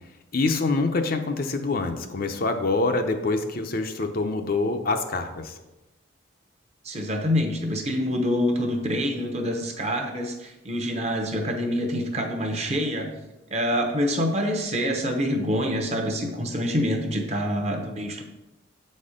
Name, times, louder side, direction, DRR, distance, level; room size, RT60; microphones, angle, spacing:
voice 1, 0.3-5.5, left 3 dB, 45° left, 6 dB, 0.6 m, -25 dB
voice 2, 6.8-13.1 13.5-18.2, equal, 30° right, 4 dB, 0.8 m, -26 dB
7.8 x 4.3 x 5.0 m, 1.0 s
head